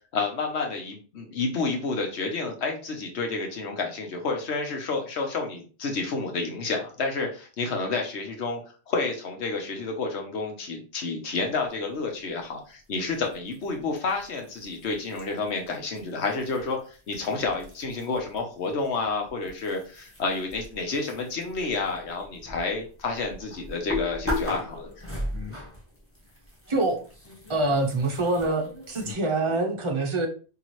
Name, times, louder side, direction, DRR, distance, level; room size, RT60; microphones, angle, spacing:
voice 1, 0.1-8.6 8.9-24.9, left 3 dB, 70° left, 3 dB, 1.2 m, -30 dB
sound 1, 13.1-18.4 18.6-29.1, left 2 dB, 10° left, 1.1 m, -38 dB
voice 2, 26.7-27.0 27.5-30.3, right 2 dB, 30° right, 2 dB, 0.6 m, -25 dB
4.2 x 2.9 x 3.1 m, 0.38 s
omnidirectional pair, 1.2 m